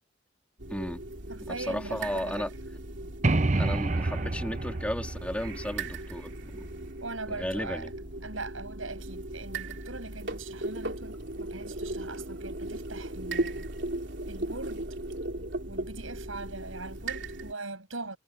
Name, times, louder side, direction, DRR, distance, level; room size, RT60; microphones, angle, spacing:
sound 1, 0.6-17.5, right 2 dB, 60° right, 3.4 m, -37 dB
voice 1, 0.7-1.0 1.5-2.5 3.5-6.7 7.3-7.9, equal, 5° left, 3.8 m, -34 dB
voice 2, 1.3-2.5 7.0-7.9 8.2-13.7 14.3-14.9 15.7-18.2, right 3 dB, 85° right, 7.7 m, -41 dB
sound 2, 3.2-6.9, right 2 dB, 35° right, 0.8 m, -29 dB
head